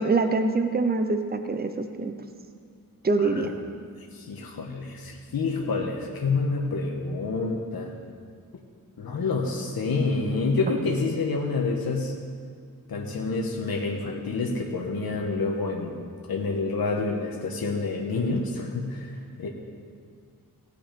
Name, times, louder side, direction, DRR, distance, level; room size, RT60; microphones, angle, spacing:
voice 1, 0.0-2.1 3.0-3.5, right 3 dB, 25° right, 7 dB, 0.8 m, -24 dB
voice 2, 4.1-7.9 9.0-12.1 12.9-16.0 16.3-19.5, left 3 dB, 90° left, 0 dB, 1.4 m, -28 dB
16.5 x 9.7 x 5.2 m, 2.1 s
wide cardioid pair, 130°, 35 cm